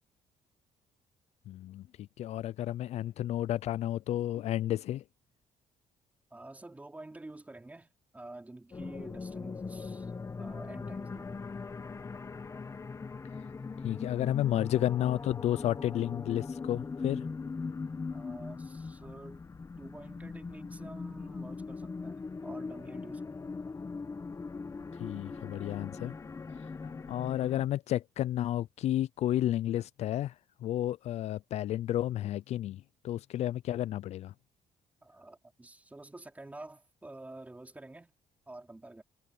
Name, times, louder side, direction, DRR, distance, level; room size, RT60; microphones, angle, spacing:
voice 1, 1.5-5.0 13.8-17.3 25.0-26.1 26.8-30.3 30.6-34.3, left 12 dB, 65° left, 0.4 m, -32 dB
voice 2, 6.3-10.1 10.4-11.5 18.1-19.5 19.8-23.5 35.0-38.1 38.5-39.0, right 2 dB, 10° right, 4.5 m, -49 dB
sound 1, 8.7-27.6, left 4 dB, 25° left, 1.2 m, -40 dB
cardioid pair, 120°, 12 cm